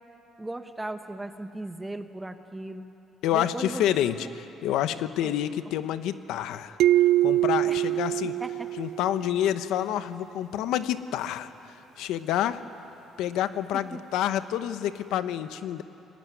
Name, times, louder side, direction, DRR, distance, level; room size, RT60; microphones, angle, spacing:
voice 1, 0.4-2.9 3.3-3.8 4.1-4.3 5.2-5.3 7.6-7.8 8.4-8.7 9.2-9.3 13.7-14.0, right 2 dB, 10° right, 7 dB, 1.2 m, -37 dB
voice 2, 3.2-4.3 4.6-6.8 7.2-8.3 8.8-11.5 12.0-12.6 13.2-15.8, left 11 dB, 85° left, 11 dB, 1.0 m, -28 dB
sound 1, 6.8-9.4, right 14 dB, 90° right, 0.5 m, -24 dB
29.0 x 21.0 x 9.6 m, 2.9 s
cardioid pair, 155°, 0 cm